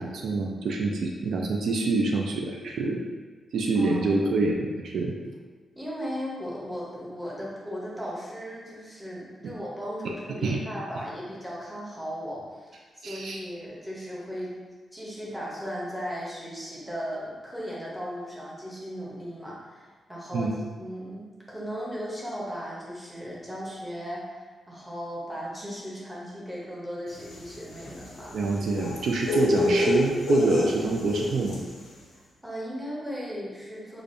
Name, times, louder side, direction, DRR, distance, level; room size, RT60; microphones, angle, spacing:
voice 1, 0.0-3.0 3.5-5.1 9.4-9.5 10.4-10.6 13.0-13.4 20.3-20.6 28.3-31.6, right 3 dB, 65° right, 0 dB, 0.3 m, -26 dB
voice 2, 3.7-4.1 5.8-14.5 14.9-20.5 20.8-28.4 32.4-34.0, equal, 5° right, -6 dB, 0.7 m, -37 dB
sound 1, 27.2-31.8, left 1 dB, 65° left, 0.6 m, -27 dB
5.0 x 2.3 x 2.5 m, 1.4 s
wide cardioid pair, 180°, 0 cm